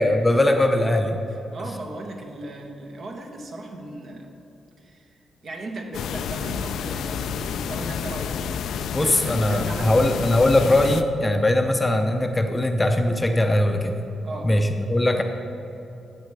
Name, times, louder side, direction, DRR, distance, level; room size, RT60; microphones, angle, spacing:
voice 1, 0.0-1.2 8.9-14.1 14.4-15.2, left 1 dB, 15° left, 5 dB, 0.6 m, -20 dB
voice 2, 1.3-4.4 4.8-5.1 5.4-8.6 9.0-10.2 14.2-14.6, right 2 dB, 50° right, 3 dB, 1.3 m, -37 dB
sound 1, 5.9-11.0, left 7 dB, 90° left, 0.4 m, -29 dB
13.0 x 7.5 x 4.8 m, 2.9 s
cardioid pair, 125°, 0 cm